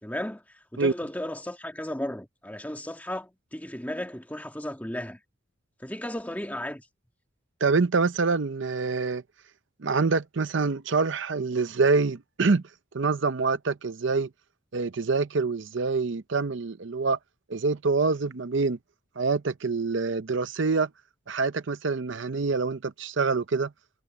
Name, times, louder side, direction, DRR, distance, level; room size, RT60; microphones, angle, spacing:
voice 1, 0.0-5.2 5.8-6.9, left 1 dB, 10° left, 2.0 m, -35 dB
voice 2, 7.6-9.2 9.8-12.6 12.9-14.3 14.7-17.2 17.5-18.8 19.2-20.9 21.3-23.7, right 4 dB, 60° right, 0.6 m, -26 dB
head